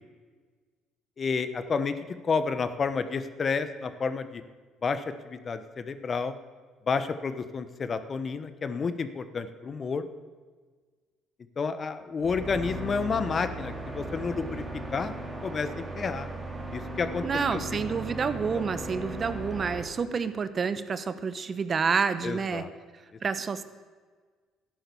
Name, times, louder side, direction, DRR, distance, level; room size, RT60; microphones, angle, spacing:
voice 1, 1.2-1.9 2.2-4.4 4.8-6.3 6.9-10.0 11.6-14.6 14.9-15.1 15.4-16.3 16.7-17.2 17.5-17.6 18.5-18.6 22.2-22.7, left 5 dB, 40° left, 11 dB, 1.1 m, -30 dB
sound 1, 12.2-19.8, right 1 dB, 10° right, 3.1 m, -37 dB
voice 2, 17.2-22.6 23.2-23.6, right 5 dB, 40° right, 12 dB, 0.9 m, -29 dB
12.5 x 10.0 x 7.0 m, 1.5 s
hypercardioid pair, 60°, 0 cm